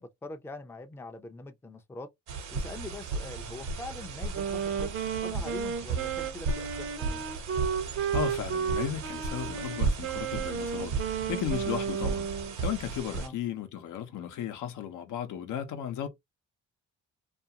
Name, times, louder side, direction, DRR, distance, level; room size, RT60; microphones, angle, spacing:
voice 1, 0.0-2.1 2.5-4.9 5.2-7.2 13.1-13.3, left 2 dB, 10° left, 0.4 m, -43 dB
sound 1, 2.3-13.3, right 4 dB, 75° right, 1.0 m, -35 dB
Wind instrument woodwind instrument, 4.3-12.5, right 7 dB, 45° right, 0.6 m, -33 dB
voice 2, 8.1-10.9 11.3-12.3 12.6-16.1, left 9 dB, 80° left, 0.7 m, -35 dB
2.5 x 2.4 x 2.8 m
cardioid pair, 90°, 30 cm